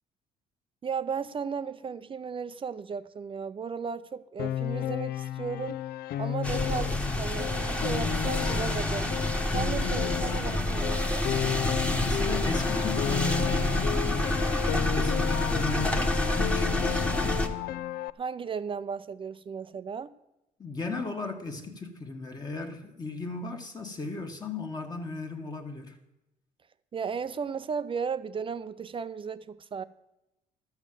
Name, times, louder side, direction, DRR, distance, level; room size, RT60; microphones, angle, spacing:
voice 1, 0.8-5.8 6.2-9.1 9.5-11.3 18.2-20.1 26.9-29.8, right 6 dB, 30° right, 0.5 m, -35 dB
Piano, 4.4-18.1, left 12 dB, 65° left, 0.4 m, -33 dB
sound 1, 6.4-17.5, left 1 dB, 5° left, 1.3 m, -28 dB
voice 2, 11.8-17.1 20.6-26.0, left 3 dB, 25° left, 1.4 m, -36 dB
12.5 x 7.1 x 7.5 m
cardioid pair, 110°, 17 cm